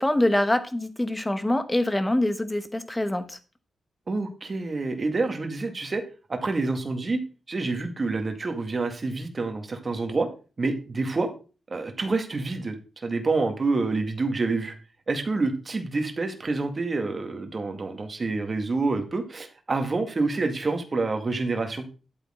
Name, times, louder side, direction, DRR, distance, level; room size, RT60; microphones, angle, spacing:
voice 1, 0.0-3.4, left 1 dB, 15° left, 10 dB, 1.3 m, -24 dB
voice 2, 4.1-6.0 6.3-7.2 7.5-10.3 10.6-11.3 11.7-12.8 13.0-14.8 15.1-21.8, right 3 dB, 35° right, 6 dB, 2.0 m, -27 dB
11.5 x 8.2 x 3.8 m, 0.34 s
cardioid pair, 95°, 0 cm